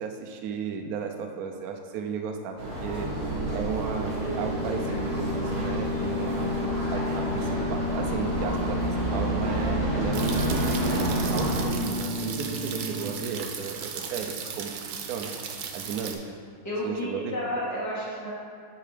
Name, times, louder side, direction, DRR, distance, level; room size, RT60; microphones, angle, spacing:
voice 1, 0.0-3.1 3.5-10.8 11.3-15.3 15.7-16.4 16.8-17.4, right 6 dB, 65° right, 4 dB, 0.9 m, -34 dB
sound 1, 2.6-11.6, right 1 dB, 50° right, 2.0 m, -30 dB
sound 2, 3.0-13.1, left 2 dB, 70° left, 2.1 m, -32 dB
sound 3, 10.1-16.1, right 7 dB, 90° right, 1.5 m, -37 dB
voice 2, 16.6-18.3, equal, 10° left, -9 dB, 1.6 m, -31 dB
9.4 x 3.9 x 5.0 m, 2.2 s
omnidirectional pair, 2.2 m